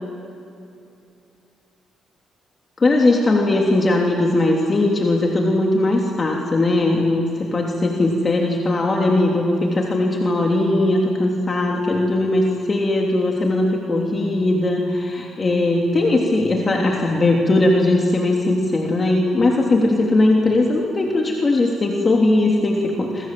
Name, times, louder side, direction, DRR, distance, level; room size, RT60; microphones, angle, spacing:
voice 1, 2.8-23.3, left 2 dB, 35° left, -1 dB, 3.3 m, -19 dB
27.0 x 24.0 x 7.9 m, 2.6 s
cardioid pair, 90°, 0 cm